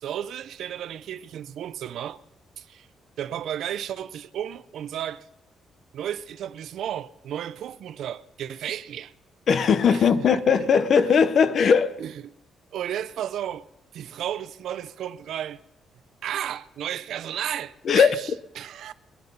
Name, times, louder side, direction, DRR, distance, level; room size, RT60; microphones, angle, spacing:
voice 1, 0.0-2.2 2.6-2.9 3.2-5.2 5.9-9.1 9.9-10.2 10.6-10.7 11.0-11.1 12.0-12.1 12.7-13.6 13.9-15.6 16.2-18.3 18.6-19.0, right 10 dB, 60° right, 0.4 m, -33 dB
voice 2, 9.5-11.9 17.8-18.1, left 6 dB, 40° left, 0.6 m, -19 dB
22.0 x 9.5 x 5.4 m
cardioid pair, 180°, 0 cm